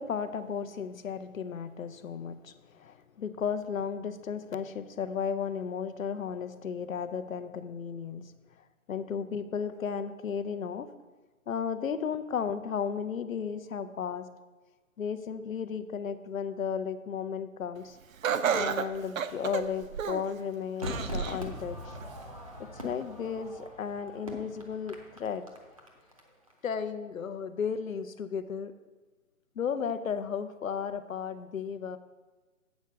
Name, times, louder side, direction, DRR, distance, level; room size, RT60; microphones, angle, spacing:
voice 1, 0.0-8.3 8.9-10.9 11.5-14.3 15.0-18.0 18.5-22.0 22.7-25.4 26.6-28.7 29.6-32.0, left 7 dB, 70° left, 10 dB, 0.7 m, -34 dB
Laughter, 18.2-20.3 20.8-21.5 21.9-22.0 23.0-23.1, right 7 dB, 70° right, 0.6 m, -31 dB
Crowd / Fireworks, 20.8-26.2 26.5-26.6, left 1 dB, 25° right, 0.6 m, -41 dB
8.1 x 4.6 x 6.6 m, 1.2 s
hypercardioid pair, 175°, 43 cm